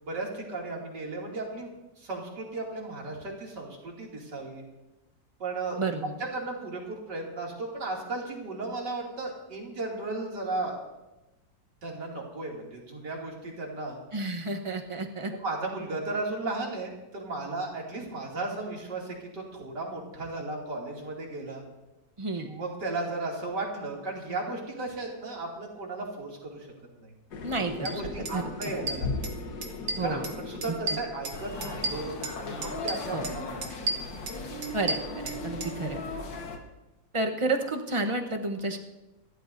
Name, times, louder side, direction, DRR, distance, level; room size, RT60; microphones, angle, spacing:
voice 1, 0.0-1.7 2.0-4.6 5.4-5.8 6.3-10.8 11.8-14.0 15.3-21.6 22.4-26.7 27.0-27.1 27.8-29.3 30.0-33.9, right 2 dB, 65° right, -2 dB, 3.3 m, -35 dB
voice 2, 5.8-6.1 14.1-15.3 22.2-22.5 27.4-28.0 28.3-28.5 28.8-28.9 30.0-30.3 30.7-31.0 33.1-33.3 34.7-36.0 37.1-38.8, right 2 dB, 25° right, 4 dB, 0.7 m, -31 dB
sound 1, 27.3-31.9, left 3 dB, 60° left, 1.7 m, -37 dB
sound 2, 27.8-27.9 28.2-28.4 28.6-29.4 29.6-30.3 30.6-32.4 32.6-33.3 33.6-35.7, right 2 dB, 85° right, 2.0 m, -33 dB
sound 3, 31.3-36.6, left 2 dB, 80° left, 2.2 m, -37 dB
27.0 x 13.5 x 2.7 m, 1.0 s
omnidirectional pair, 2.0 m